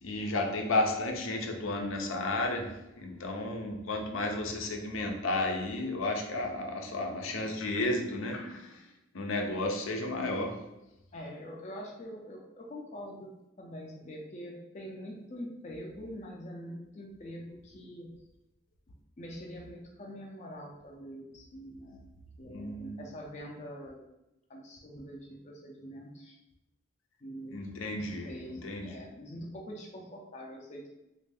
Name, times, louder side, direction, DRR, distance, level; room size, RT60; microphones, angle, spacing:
voice 1, 0.0-8.8 9.1-10.6 22.5-23.0 27.5-28.3 28.6-28.9, left 2 dB, 80° left, 3 dB, 0.6 m, -32 dB
voice 2, 11.1-13.3 13.6-18.1 19.2-22.1 22.4-24.0 24.5-26.4 27.2-27.6 27.9-30.9, equal, 35° left, -1 dB, 0.4 m, -44 dB
3.2 x 2.5 x 3.4 m, 0.91 s
head